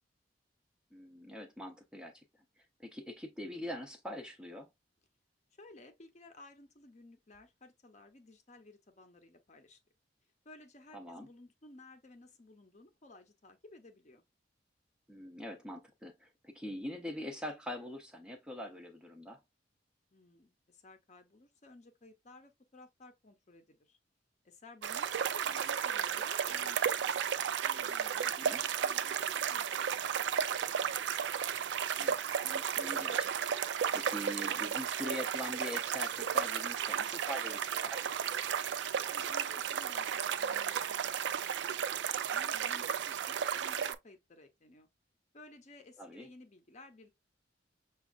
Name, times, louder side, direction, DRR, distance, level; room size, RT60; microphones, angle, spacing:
voice 1, 0.9-2.2 2.8-4.7 10.9-11.3 15.1-19.4 28.4-28.6 32.0-33.3 33.6-38.0 46.0-46.3, equal, 5° right, 0.6 m, -43 dB
voice 2, 5.6-9.8 10.4-14.2 20.1-24.0 24.4-27.1 27.6-30.6 39.1-44.9 45.3-47.1, left 2 dB, 40° left, 0.7 m, -56 dB
sound 1, 24.8-43.9, right 8 dB, 70° right, 0.3 m, -33 dB
6.1 x 2.3 x 2.4 m
head